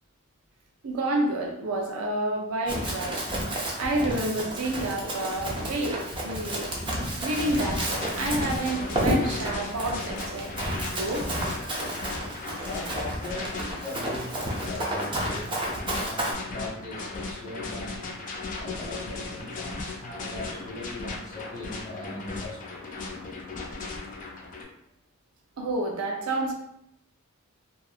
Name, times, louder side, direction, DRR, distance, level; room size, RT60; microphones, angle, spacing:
voice 1, 0.8-3.3 3.8-6.7 7.2-10.5 10.9-11.3 25.6-26.5, right 1 dB, 75° right, 1 dB, 0.5 m, -29 dB
Run, 2.7-16.3, right 1 dB, 25° right, 0.5 m, -31 dB
sound 1, 7.2-24.6, left 3 dB, 40° left, 0.4 m, -37 dB
voice 2, 12.4-18.1 18.5-22.9, left 2 dB, 20° left, -7 dB, 1.1 m, -39 dB
2.7 x 2.3 x 2.3 m, 0.77 s
head